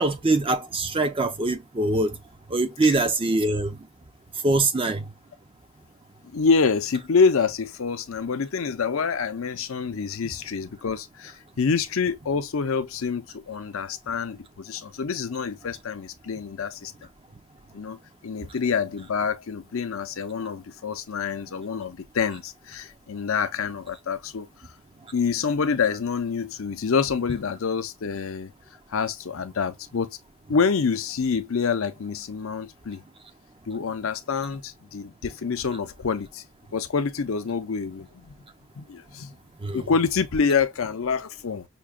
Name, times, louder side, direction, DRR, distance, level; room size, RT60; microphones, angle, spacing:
voice 1, 0.0-2.2 2.5-3.8 4.4-5.0 39.6-39.8, right 2 dB, 25° right, 0.5 m, -23 dB
voice 2, 6.3-16.9 17.7-18.0 18.2-24.5 25.1-28.5 28.9-30.1 30.5-33.0 33.7-36.4 36.7-38.3 38.8-39.3 39.7-41.7, left 5 dB, 65° left, 0.5 m, -26 dB
5.8 x 2.2 x 2.3 m
head